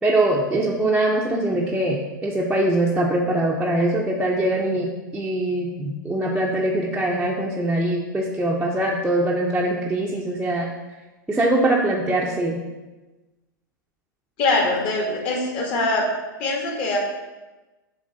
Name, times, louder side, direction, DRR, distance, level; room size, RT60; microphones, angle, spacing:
voice 1, 0.0-10.7 11.3-12.6, right 1 dB, 5° right, -4 dB, 0.7 m, -22 dB
voice 2, 14.4-16.1 16.4-17.0, left 2 dB, 45° left, 0 dB, 1.7 m, -22 dB
7.4 x 3.3 x 3.9 m, 1.1 s
hypercardioid pair, 110°, 11 cm